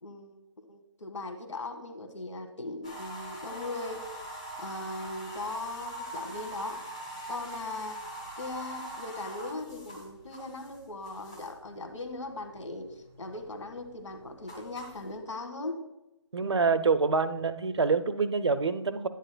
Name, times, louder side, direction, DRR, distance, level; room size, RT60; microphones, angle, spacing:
voice 1, 0.0-4.0 4.6-6.8 7.3-8.0 8.4-15.9 16.8-16.9, left 2 dB, 90° left, 6 dB, 1.5 m, -39 dB
sound 1, 2.8-11.7 12.1-12.7 13.1-15.1, right 1 dB, 15° left, 0.8 m, -42 dB
voice 2, 16.3-19.1, right 4 dB, 70° right, 12 dB, 0.6 m, -26 dB
10.5 x 9.1 x 2.2 m, 0.92 s
hypercardioid pair, 180°, 15 cm